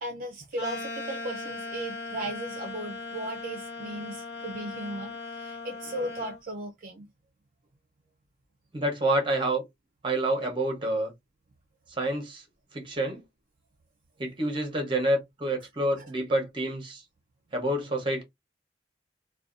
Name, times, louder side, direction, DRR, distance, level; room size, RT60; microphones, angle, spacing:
voice 1, 0.0-7.1 16.0-16.1, right 1 dB, 50° right, 0.4 m, -36 dB
sound 1, 0.6-6.4, left 3 dB, 75° left, 0.8 m, -38 dB
voice 2, 8.7-9.6 10.0-11.1 11.9-12.4 12.7-13.2 14.2-17.0 17.5-18.2, right 1 dB, 30° right, 0.8 m, -28 dB
2.6 x 2.2 x 2.4 m
head